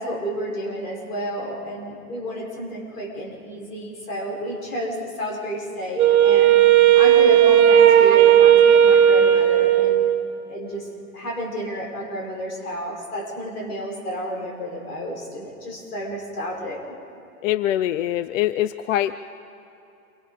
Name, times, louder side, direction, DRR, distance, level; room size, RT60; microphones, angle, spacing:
voice 1, 0.0-6.6 6.9-10.1 10.5-16.8, equal, 90° left, -1 dB, 5.7 m, -31 dB
Wind instrument woodwind instrument, 6.0-10.4, right 10 dB, 70° right, 1.6 m, -14 dB
voice 2, 17.4-19.2, left 13 dB, 60° left, 14 dB, 0.6 m, -23 dB
28.0 x 24.5 x 4.2 m, 2.8 s
hypercardioid pair, 120°, 44 cm